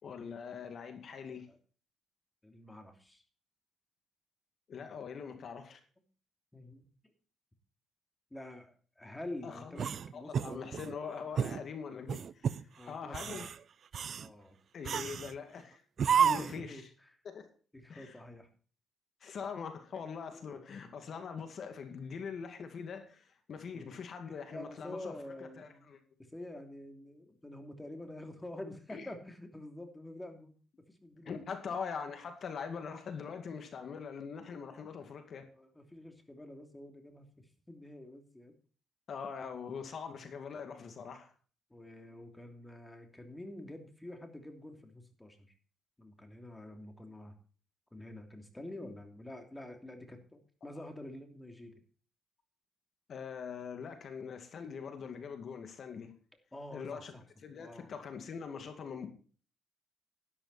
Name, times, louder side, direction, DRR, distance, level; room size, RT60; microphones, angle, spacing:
voice 1, 0.0-1.5 4.7-5.8 9.4-9.7 10.1-13.5 14.7-15.8 16.1-16.8 17.2-17.5 17.9-18.2 19.2-25.1 25.6-26.0 28.9-29.1 31.2-35.5 39.1-41.3 53.1-56.1 56.7-57.1 57.4-59.1, left 6 dB, 55° left, 2.2 m, -42 dB
voice 2, 2.4-3.2 6.5-7.1 8.3-10.7 12.8-13.5 14.2-14.6 16.3-17.2 17.7-18.5 20.3-20.7 23.7-24.0 24.3-25.9 26.2-30.5 30.9-31.4 35.5-38.5 41.7-45.5 46.0-47.3 47.9-51.8 56.5-57.2 57.6-57.9, left 1 dB, 10° left, 2.9 m, -47 dB
sound 1, 9.8-10.9 11.4-11.6 12.1-12.6 13.1-13.6 13.9-14.3 14.8-15.3 16.0-16.6, right 7 dB, 55° right, 0.6 m, -31 dB
12.0 x 11.5 x 4.2 m
cardioid pair, 90°, 0 cm